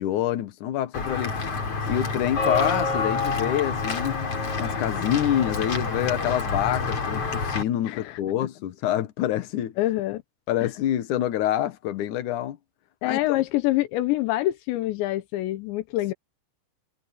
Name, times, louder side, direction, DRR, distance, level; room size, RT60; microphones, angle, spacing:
voice 1, 0.0-1.4 1.9-4.3 4.6-9.8 10.5-12.6 13.1-13.4, left 12 dB, 65° left, 2.1 m, -26 dB
Walk footsteps / Bell, 0.9-7.6, left 4 dB, 35° left, 4.4 m, -27 dB
voice 2, 7.9-8.2 9.8-10.2 10.6-10.7 13.0-16.1, left 16 dB, 85° left, 3.2 m, -26 dB
omnidirectional pair, 5.1 m